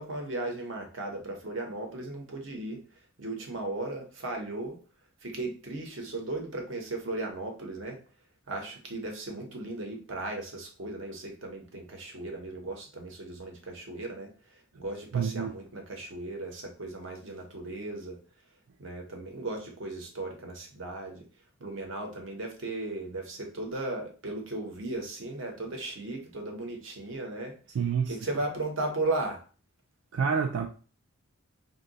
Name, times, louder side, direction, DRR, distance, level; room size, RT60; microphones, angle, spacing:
voice 1, 0.0-2.8 3.2-4.8 5.2-8.0 8.5-14.3 14.8-18.2 18.8-21.3 21.6-27.5 28.1-29.4, right 2 dB, 60° right, 3 dB, 0.8 m, -36 dB
voice 2, 15.1-15.5 27.7-28.2 30.1-30.7, right 6 dB, 85° right, 3 dB, 0.4 m, -27 dB
2.6 x 2.1 x 3.9 m, 0.38 s
head